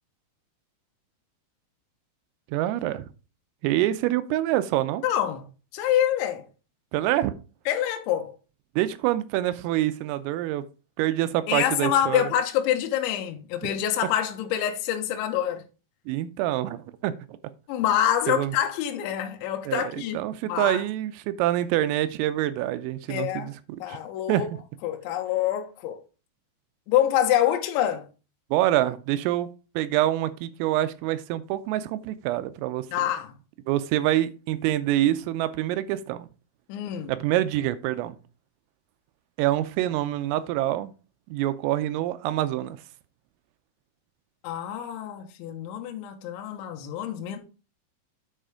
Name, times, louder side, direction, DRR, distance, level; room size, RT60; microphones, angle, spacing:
voice 1, 2.5-3.1 3.6-5.0 6.9-7.3 8.8-10.7 11.0-12.2 16.1-17.1 18.3-18.5 19.7-24.0 24.3-24.4 28.5-33.1 33.7-36.3 37.1-38.2 39.4-40.9 41.3-42.8, right 14 dB, 90° right, 3.4 m, -26 dB
voice 2, 5.0-5.4 5.7-6.5 7.7-8.4 11.5-15.6 17.7-20.8 23.1-23.5 23.8-24.5 24.8-26.0 26.9-28.1 32.9-33.3 36.7-37.1 44.4-47.4, left 11 dB, 75° left, 3.1 m, -26 dB
9.0 x 5.1 x 4.9 m
omnidirectional pair, 5.9 m